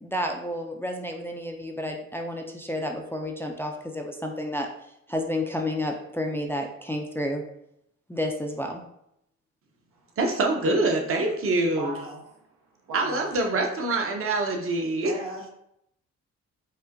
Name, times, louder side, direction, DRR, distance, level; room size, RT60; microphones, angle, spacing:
voice 1, 0.0-4.7 5.1-7.4 8.1-8.8, left 1 dB, 10° left, 2 dB, 0.4 m, -30 dB
voice 2, 10.2-11.9 12.9-15.1, right 2 dB, 45° right, 2 dB, 0.8 m, -25 dB
voice 3, 11.7-12.4 12.8-13.3 15.0-15.4, right 2 dB, 85° right, 0 dB, 1.0 m, -37 dB
5.4 x 2.1 x 2.5 m, 0.77 s
cardioid pair, 90°, 30 cm